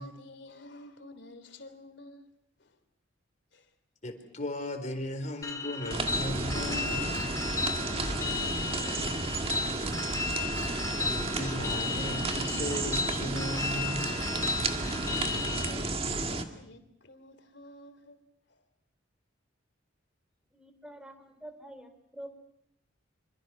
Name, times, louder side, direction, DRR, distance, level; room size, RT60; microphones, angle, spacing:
voice 1, 0.0-2.3 2.6-2.8 3.5-3.7 6.4-9.3 13.8-13.9 15.2-18.2 18.5-18.6, left 1 dB, 65° left, 3.3 m, -50 dB
voice 2, 4.0-7.2 10.9-14.4, left 1 dB, 40° left, 4.1 m, -37 dB
sound 1, 5.4-15.7, left 3 dB, 15° left, 2.2 m, -34 dB
sound 2, 5.9-16.4, right 2 dB, 30° right, 1.9 m, -32 dB
voice 3, 20.5-22.3, right 1 dB, 5° right, 3.6 m, -47 dB
26.5 x 26.0 x 6.1 m
head